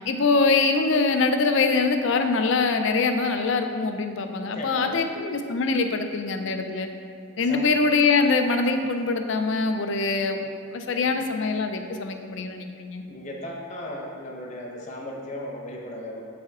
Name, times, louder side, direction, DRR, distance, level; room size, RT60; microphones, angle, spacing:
voice 1, 0.1-6.9 7.4-13.0, left 4 dB, 65° left, 6 dB, 0.5 m, -23 dB
voice 2, 4.4-5.1 7.3-7.7 13.1-16.2, left 1 dB, 35° left, -1 dB, 0.7 m, -36 dB
7.3 x 4.2 x 3.6 m, 2.2 s
head